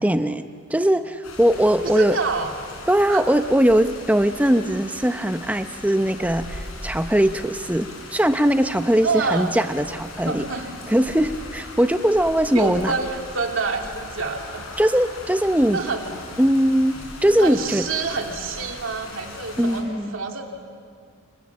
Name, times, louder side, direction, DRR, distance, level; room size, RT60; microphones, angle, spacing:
voice 1, 0.0-2.2 2.9-10.5 10.9-12.9 14.8-15.8 16.4-16.9 17.2-17.9 19.6-20.2, right 1 dB, 5° right, 9 dB, 0.7 m, -20 dB
sound 1, 1.2-19.8, left 2 dB, 85° left, 6.1 m, -39 dB
voice 2, 1.9-2.5 3.1-3.2 9.0-9.5 10.2-10.7 12.5-14.7 15.7-16.1 17.4-20.5, right 4 dB, 65° right, 3 dB, 2.7 m, -27 dB
29.5 x 28.0 x 7.2 m, 2.2 s
head